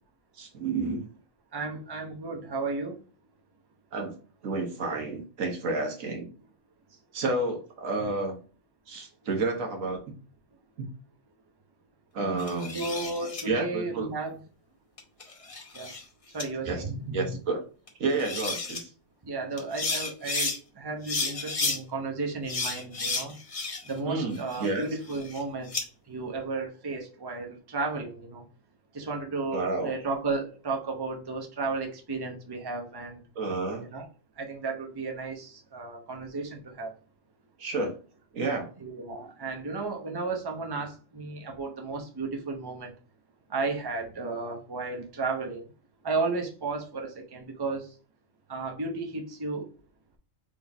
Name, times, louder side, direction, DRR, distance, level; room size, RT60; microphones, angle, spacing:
voice 1, 0.4-1.0 3.9-4.1 4.4-6.3 7.1-8.3 8.9-10.1 10.8-10.9 12.1-12.9 13.4-14.1 16.7-16.8 17.1-17.6 18.0-18.9 24.1-24.8 29.5-29.9 33.3-33.9 37.6-38.0 38.3-38.7, right 3 dB, 80° right, 3 dB, 1.5 m, -30 dB
voice 2, 1.5-3.0 12.7-14.4 15.7-15.9 16.3-17.3 19.2-23.4 23.8-25.7 26.1-28.4 28.9-33.2 33.8-34.0 34.4-36.9 38.8-42.9 43.5-45.7 46.0-47.9 48.5-49.7, right 3 dB, 20° right, 2 dB, 0.8 m, -33 dB
sound 1, 12.4-13.4 15.0-16.0 16.4-16.5 17.9-18.0 18.2-18.8 19.6-20.6 21.0-21.8 22.5-24.0 24.3-25.8, left 3 dB, 30° left, 0.8 m, -32 dB
4.3 x 3.6 x 3.4 m, 0.38 s
omnidirectional pair, 1.4 m